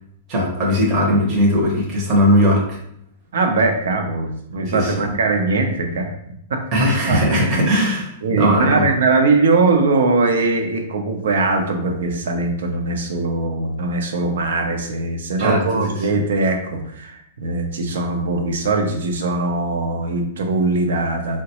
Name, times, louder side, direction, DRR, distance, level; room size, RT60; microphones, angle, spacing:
voice 1, 0.3-2.8 4.7-5.1 6.7-8.8 15.4-15.6, equal, 30° right, -4 dB, 0.7 m, -18 dB
voice 2, 3.3-6.1 6.5-6.6 7.0-7.2 8.2-21.4, right 3 dB, 80° right, 4 dB, 0.6 m, -21 dB
3.8 x 2.1 x 2.9 m, 0.72 s
hypercardioid pair, 155°, 0 cm